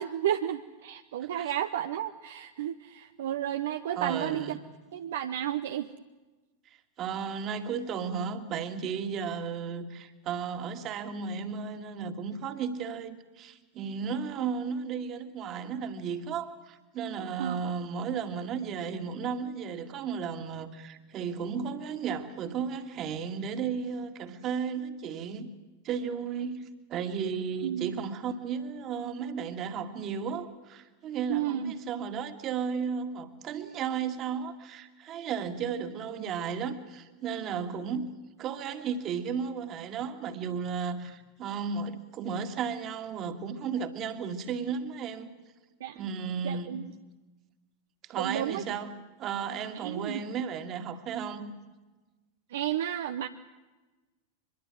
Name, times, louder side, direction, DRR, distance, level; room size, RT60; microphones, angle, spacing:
voice 1, 0.0-4.5 4.9-5.9 17.4-17.6 27.6-28.0 31.3-31.7 45.8-46.0 46.4-46.8 48.2-48.6 49.7-50.2 52.5-53.3, right 11 dB, 60° right, 8 dB, 0.8 m, -32 dB
voice 2, 4.0-4.6 7.0-25.5 25.8-38.1 38.4-45.3 45.9-46.8 48.0-51.5, right 6 dB, 35° right, 8 dB, 2.0 m, -34 dB
24.0 x 22.0 x 7.7 m, 1.2 s
figure-of-eight pair, 90°, 0 cm